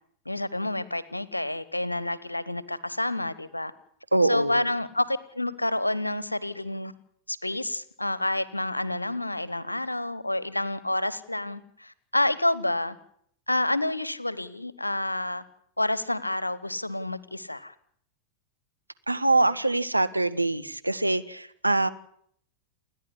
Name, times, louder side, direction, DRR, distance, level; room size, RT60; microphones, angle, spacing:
voice 1, 0.2-3.7 4.2-6.9 7.3-13.0 13.5-15.4 15.8-17.7, left 1 dB, 85° left, 1.1 m, -29 dB
voice 2, 4.1-4.7 19.1-21.9, right 2 dB, 85° right, 1.1 m, -24 dB
29.5 x 10.5 x 9.9 m
figure-of-eight pair, 90°, 0 cm